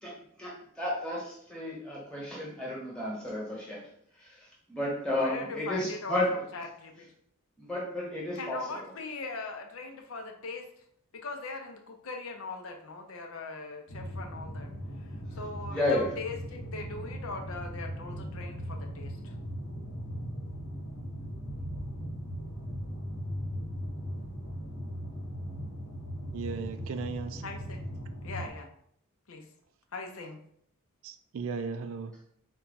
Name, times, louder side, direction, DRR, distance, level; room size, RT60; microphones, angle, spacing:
voice 1, 0.0-3.9 4.2-4.4 4.7-6.4 7.6-8.6 15.7-16.1, left 1 dB, 5° left, -5 dB, 1.2 m, -32 dB
voice 2, 5.1-7.1 8.3-10.7 11.1-14.7 15.1-19.3 27.4-27.8 28.2-28.7 29.3-29.4 29.9-30.4, left 3 dB, 70° left, 3 dB, 0.6 m, -40 dB
sound 1, 13.9-28.5, equal, 85° left, 1.1 m, -38 dB
voice 3, 26.3-27.4 31.0-32.2, right 5 dB, 65° right, 8 dB, 0.3 m, -36 dB
4.3 x 2.3 x 4.0 m, 0.67 s
head